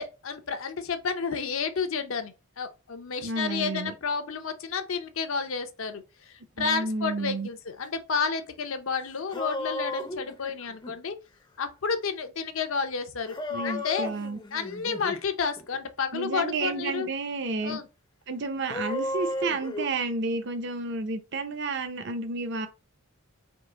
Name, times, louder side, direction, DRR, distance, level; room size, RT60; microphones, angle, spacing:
voice 1, 0.0-11.2 11.6-13.4 13.6-14.1 14.5-17.1 17.6-17.9, left 5 dB, 70° left, 0.6 m, -31 dB
voice 2, 3.2-3.9 6.6-7.5 13.5-14.4 16.1-17.8 18.3-22.7, right 3 dB, 55° right, 0.6 m, -31 dB
sound 1, 8.9-9.0 9.1-10.9 13.3-15.2 15.6-15.8 18.7-19.9, left 2 dB, 20° left, 0.5 m, -34 dB
3.7 x 2.9 x 3.8 m
head